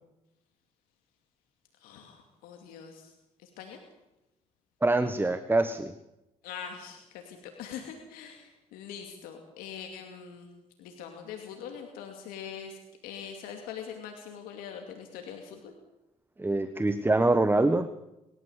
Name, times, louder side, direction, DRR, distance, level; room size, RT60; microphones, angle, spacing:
voice 1, 1.8-3.8 6.4-10.5 10.8-15.8, left 7 dB, 90° left, 4 dB, 2.6 m, -43 dB
voice 2, 4.8-5.9 16.4-17.9, right 2 dB, 15° right, 11 dB, 1.3 m, -24 dB
23.5 x 13.5 x 8.1 m, 0.95 s
supercardioid pair, 70°, 15 cm